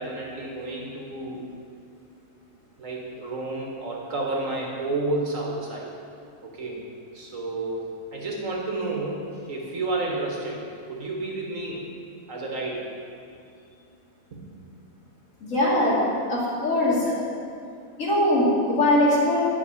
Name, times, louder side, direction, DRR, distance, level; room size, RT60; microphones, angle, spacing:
voice 1, 0.0-1.4 2.8-5.9 6.4-6.8 7.1-11.9 12.3-12.8 14.3-14.4, right 2 dB, 65° right, -2 dB, 2.1 m, -31 dB
voice 2, 15.5-16.0 16.3-17.2 18.0-19.4, left 1 dB, 60° left, -6 dB, 2.8 m, -21 dB
11.0 x 5.5 x 8.5 m, 2.4 s
omnidirectional pair, 1.5 m